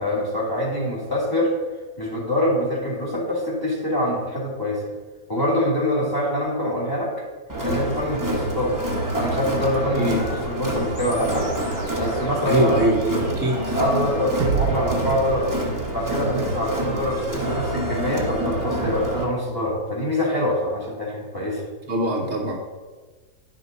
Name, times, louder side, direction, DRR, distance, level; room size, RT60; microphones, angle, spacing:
voice 1, 0.0-1.5 2.0-4.8 5.3-7.1 7.6-8.8 9.1-11.5 12.0-12.8 13.7-15.5 15.9-21.6, left 1 dB, 15° left, -4 dB, 2.1 m, -24 dB
Crowd, 7.5-19.2, right 1 dB, 15° right, 1.0 m, -27 dB
sound 1, 10.9-13.9, left 2 dB, 80° left, 2.7 m, -45 dB
voice 2, 12.4-13.8 21.4-21.5 21.9-22.6, right 1 dB, 50° right, -1 dB, 1.2 m, -23 dB
sound 2, 14.4-17.7, right 7 dB, 90° right, 1.2 m, -30 dB
10.5 x 5.6 x 4.0 m, 1.4 s
omnidirectional pair, 1.7 m